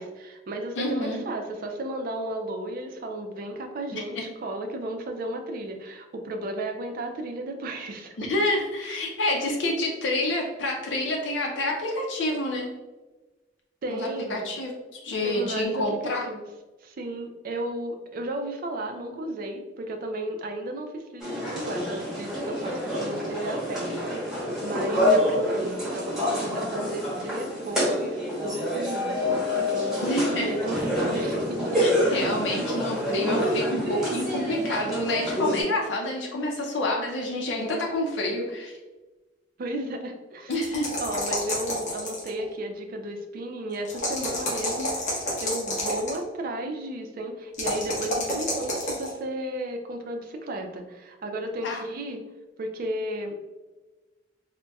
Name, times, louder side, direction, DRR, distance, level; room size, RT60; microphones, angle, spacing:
voice 1, 0.0-8.2 13.8-14.4 15.2-16.5 16.8-24.2 24.6-31.9 39.6-40.7 41.0-52.2 52.6-53.5, right 1 dB, 50° right, 4 dB, 0.4 m, -34 dB
voice 2, 0.8-1.2 3.9-4.2 8.2-12.7 13.9-16.2 30.0-30.5 31.8-38.7 40.5-40.9 51.6-51.8, left 1 dB, 90° left, -1 dB, 0.5 m, -28 dB
sound 1, 21.2-35.6, left 1 dB, 5° right, 1.0 m, -27 dB
sound 2, 40.5-42.4 43.8-46.2 47.5-49.1, left 1 dB, 40° left, 0.9 m, -29 dB
3.9 x 2.1 x 2.2 m, 1.2 s
head